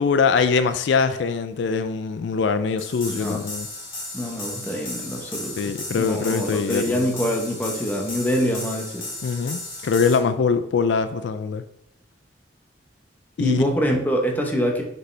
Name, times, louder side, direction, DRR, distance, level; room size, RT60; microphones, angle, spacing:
voice 1, 0.0-3.7 5.6-7.1 9.2-11.6 13.4-13.6, left 5 dB, 75° left, 0.3 m, -23 dB
sound 1, 2.8-10.2, left 2 dB, 30° left, 1.9 m, -35 dB
voice 2, 3.1-3.4 4.1-9.1 13.4-14.8, equal, 10° left, 0.9 m, -25 dB
6.3 x 4.9 x 3.3 m
head